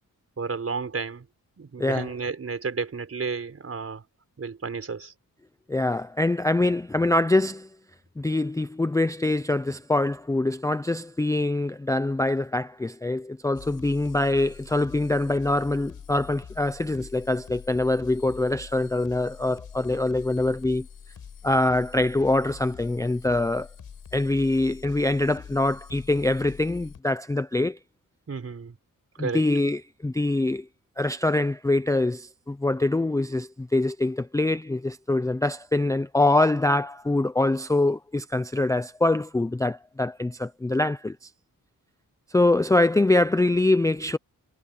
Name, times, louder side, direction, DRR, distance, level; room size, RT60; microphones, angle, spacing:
voice 1, 0.4-1.2 1.6-4.0 4.4-5.1 28.3-28.8 29.2-29.5, right 5 dB, 45° right, 5.1 m, -32 dB
voice 2, 1.8-2.1 5.7-7.7 8.2-20.9 21.4-23.7 24.1-27.8 29.2-30.7 31.0-41.3 42.3-44.2, left 2 dB, 10° left, 0.4 m, -24 dB
sound 1, 13.5-27.0, left 7 dB, 80° left, 6.7 m, -45 dB
wide cardioid pair, 165°, 34 cm